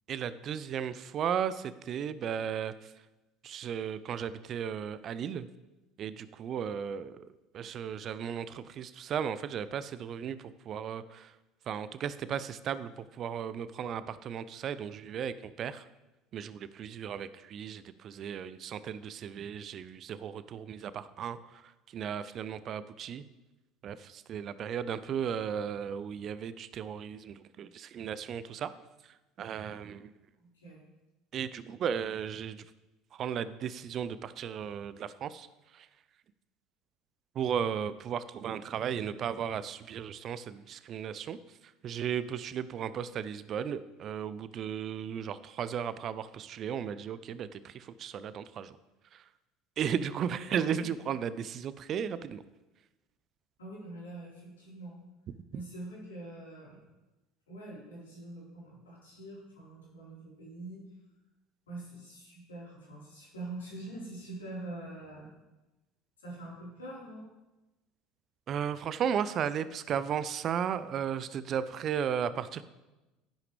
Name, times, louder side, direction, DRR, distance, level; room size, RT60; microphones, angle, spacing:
voice 1, 0.1-2.9 3.4-5.5 6.0-7.3 7.5-11.3 11.7-15.8 16.3-23.3 23.8-28.7 29.4-30.1 31.3-32.7 33.1-35.5 35.7-35.9 37.4-41.4 41.8-48.8 49.1-49.2 49.8-52.4 68.5-72.6, right 8 dB, 40° right, 15 dB, 0.5 m, -35 dB
voice 2, 30.4-30.8 50.5-50.9 53.6-55.0 55.5-56.8 57.5-60.8 61.7-65.3 66.2-67.2, right 2 dB, 75° left, -6 dB, 4.6 m, -44 dB
11.5 x 10.5 x 3.5 m, 1.0 s
figure-of-eight pair, 65°, 0 cm